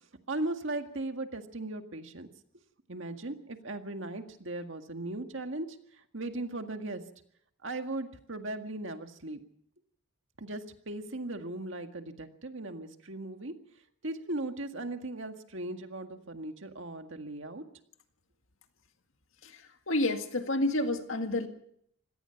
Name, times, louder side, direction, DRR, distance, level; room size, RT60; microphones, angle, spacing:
voice 1, 0.3-2.3 2.9-7.0 7.6-9.4 10.4-13.5 14.0-17.6, right 2 dB, 60° right, 6 dB, 1.9 m, -38 dB
voice 2, 19.9-21.5, left 2 dB, 70° left, 6 dB, 1.9 m, -29 dB
25.0 x 18.0 x 5.9 m, 0.69 s
head